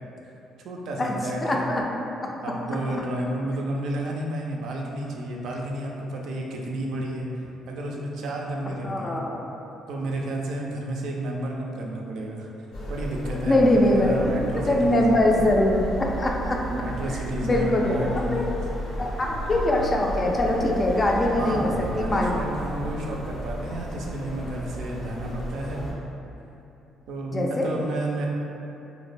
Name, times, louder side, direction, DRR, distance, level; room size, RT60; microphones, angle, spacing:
voice 1, 0.6-1.7 2.4-7.3 7.7-9.2 9.9-12.5 12.9-15.3 16.7-18.6 19.0-19.1 21.4-25.8 27.1-28.3, right 1 dB, 70° right, -1 dB, 0.3 m, -31 dB
voice 2, 1.4-2.0 3.0-3.1 8.8-9.4 13.5-16.6 17.0-17.9 18.3-18.5 19.0-22.4 27.3-27.7, left 1 dB, 35° left, -1 dB, 0.4 m, -23 dB
sound 1, 12.7-25.9, equal, 75° left, 0.8 m, -33 dB
2.1 x 2.0 x 3.1 m, 2.8 s
supercardioid pair, 60°, 0 cm